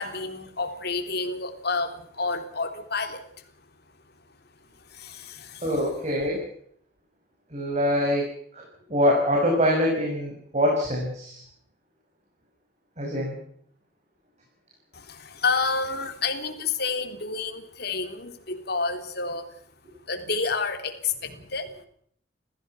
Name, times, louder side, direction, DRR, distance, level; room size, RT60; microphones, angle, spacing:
voice 1, 0.0-3.2 4.9-5.7 14.9-19.5 20.1-21.7, left 4 dB, 60° left, 6 dB, 3.3 m, -29 dB
voice 2, 5.6-6.4 7.5-8.3 8.9-11.4 13.0-13.4, equal, 35° right, -1 dB, 6.5 m, -24 dB
29.5 x 16.0 x 6.0 m, 0.63 s
head